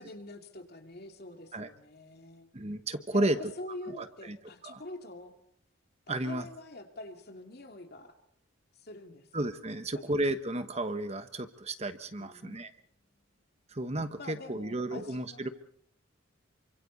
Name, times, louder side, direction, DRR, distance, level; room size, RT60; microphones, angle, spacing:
voice 1, 0.0-2.5 3.1-5.3 6.1-8.2 8.7-9.3 9.9-10.0 12.2-12.7 13.0-13.1 14.2-15.5, left 2 dB, 50° left, 4 dB, 2.6 m, -45 dB
voice 2, 2.5-3.5 4.0-4.4 4.6-4.8 6.1-6.4 9.3-12.7 13.7-15.5, right 1 dB, 35° right, 9 dB, 1.2 m, -33 dB
28.5 x 25.0 x 4.1 m, 0.65 s
head